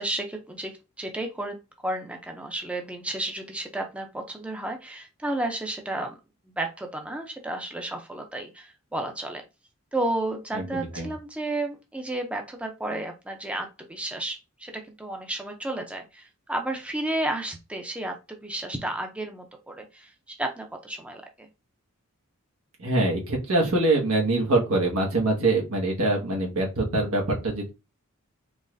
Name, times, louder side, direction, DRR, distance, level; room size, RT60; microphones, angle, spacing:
voice 1, 0.0-6.2 6.5-9.4 9.9-21.2, right 1 dB, 5° right, 3 dB, 0.4 m, -32 dB
voice 2, 10.5-11.1 22.8-27.7, right 2 dB, 85° right, 0 dB, 1.3 m, -24 dB
3.9 x 3.1 x 2.5 m, 0.27 s
head